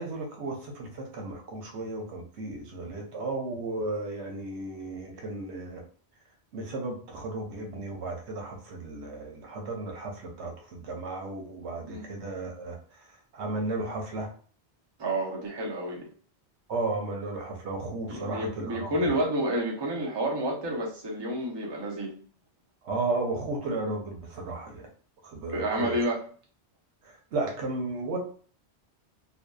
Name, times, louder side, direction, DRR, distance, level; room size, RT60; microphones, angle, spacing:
voice 1, 0.0-5.8 6.5-13.0 13.3-14.3 16.7-18.9 22.8-24.9 25.2-26.0 27.0-28.2, right 2 dB, 85° right, 2 dB, 0.9 m, -34 dB
voice 2, 15.0-16.0 18.1-22.1 25.5-26.2, right 1 dB, 30° right, -2 dB, 0.5 m, -29 dB
2.6 x 2.2 x 2.2 m, 0.43 s
omnidirectional pair, 1.1 m